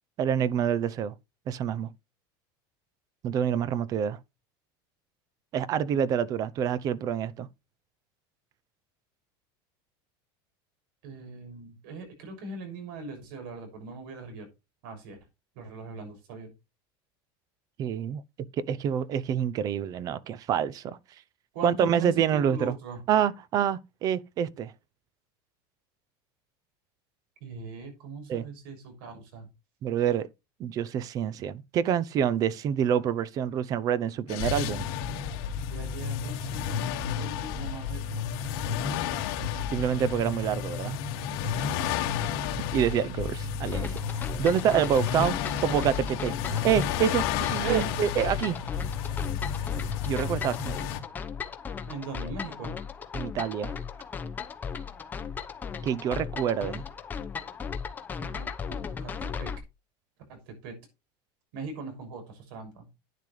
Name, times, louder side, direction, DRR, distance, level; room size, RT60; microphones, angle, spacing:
voice 1, 0.2-1.1 1.5-1.9 3.2-4.2 5.5-7.5 17.8-18.2 18.6-21.0 21.6-22.8 23.1-24.7 28.3-28.5 29.8-30.3 30.6-34.8 39.7-41.0 42.7-44.0 44.4-45.4 45.6-48.6 50.0-50.8 53.1-53.7 55.8-56.9, right 8 dB, 30° right, 0.6 m, -27 dB
voice 2, 11.0-14.5 14.8-15.2 15.5-16.5 21.5-23.0 27.4-29.5 35.7-36.8 37.1-38.3 41.8-41.9 47.6-47.9 51.8-52.7 58.2-59.5 60.3-60.7 61.5-62.9, right 4 dB, 75° right, 6.4 m, -39 dB
sound 1, 34.3-51.0, left 7 dB, 55° left, 2.3 m, -31 dB
sound 2, 43.7-59.6, left 6 dB, 15° left, 0.9 m, -37 dB
10.5 x 10.0 x 3.2 m
cardioid pair, 170°, 12 cm